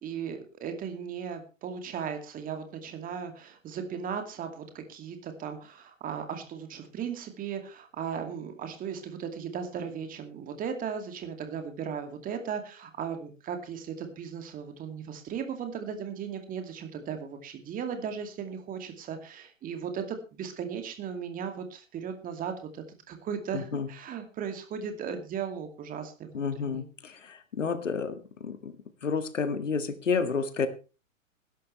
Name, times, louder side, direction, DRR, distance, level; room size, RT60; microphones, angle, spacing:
voice 1, 0.0-26.8, right 7 dB, 20° right, 6 dB, 2.5 m, -37 dB
voice 2, 23.5-23.9 26.3-28.7 29.0-30.7, left 5 dB, 65° left, 11 dB, 1.9 m, -30 dB
20.0 x 11.5 x 3.3 m, 0.33 s
figure-of-eight pair, 110°, 39 cm